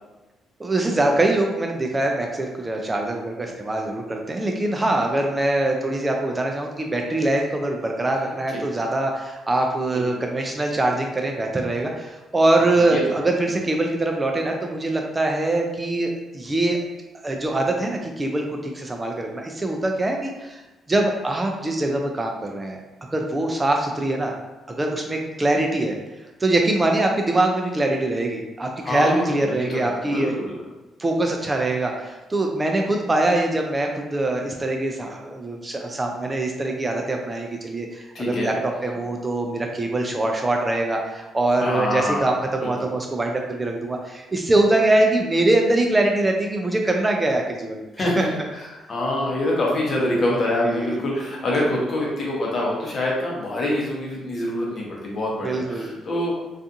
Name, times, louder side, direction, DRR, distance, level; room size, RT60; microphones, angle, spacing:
voice 1, 0.6-16.8 17.2-20.6 20.9-22.8 23.1-24.3 24.8-26.0 26.4-30.3 31.0-48.2 50.6-50.9 55.4-55.9, right 2 dB, 20° right, 2 dB, 0.3 m, -23 dB
voice 2, 12.6-13.0 28.8-30.5 38.1-38.9 41.6-42.9 47.9-56.3, left 1 dB, 45° left, -3 dB, 0.8 m, -26 dB
2.4 x 2.4 x 2.6 m, 1.1 s
cardioid pair, 90°, 0 cm